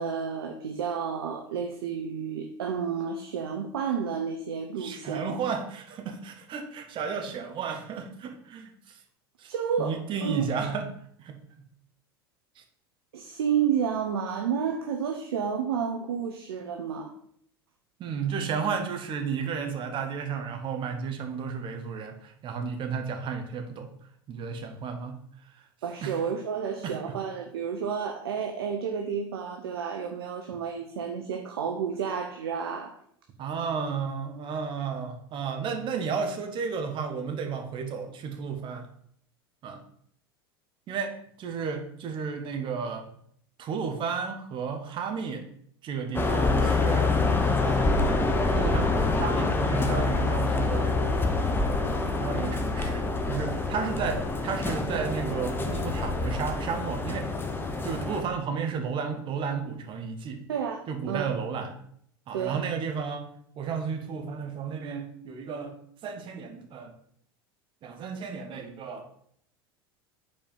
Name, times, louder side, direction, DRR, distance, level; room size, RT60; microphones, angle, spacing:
voice 1, 0.0-5.4 9.5-10.5 13.1-17.1 25.8-33.0 60.5-61.3 62.3-62.6, right 7 dB, 75° right, 4 dB, 0.7 m, -31 dB
voice 2, 4.8-8.9 9.4-9.5 9.8-10.9 11.2-11.4 18.0-23.9 24.3-25.2 26.0-26.1 26.8-27.2 33.4-38.9 39.6-39.8 40.9-43.0 43.6-45.4 45.8-47.1 47.6-51.0 51.8-57.3 57.8-60.4 60.9-61.7 62.3-63.3 63.6-65.7 66.0-66.9 67.8-69.0, right 6 dB, 40° right, 5 dB, 1.2 m, -33 dB
sound 1, 46.1-58.2, left 3 dB, 15° left, 0.9 m, -26 dB
5.4 x 4.5 x 5.4 m, 0.67 s
hypercardioid pair, 85°, 13 cm